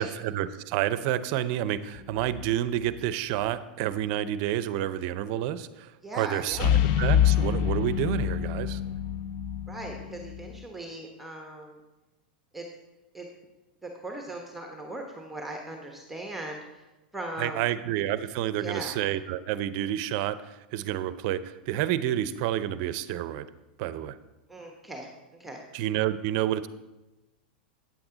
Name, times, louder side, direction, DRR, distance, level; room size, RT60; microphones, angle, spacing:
voice 1, 0.0-8.8 17.4-23.5 23.8-24.2 25.7-26.7, right 12 dB, 50° right, 14 dB, 0.5 m, -29 dB
sound 1, 2.0-2.5 6.5-10.6, left 9 dB, 55° left, 0.7 m, -26 dB
voice 2, 6.0-6.7 9.7-11.8 12.5-12.7 13.1-13.3 13.8-16.9 17.1-17.6 18.6-19.0 24.5-25.1 25.4-25.6, right 1 dB, 5° right, 1 dB, 1.1 m, -39 dB
9.0 x 7.9 x 3.9 m, 1.0 s
hypercardioid pair, 110°, 5 cm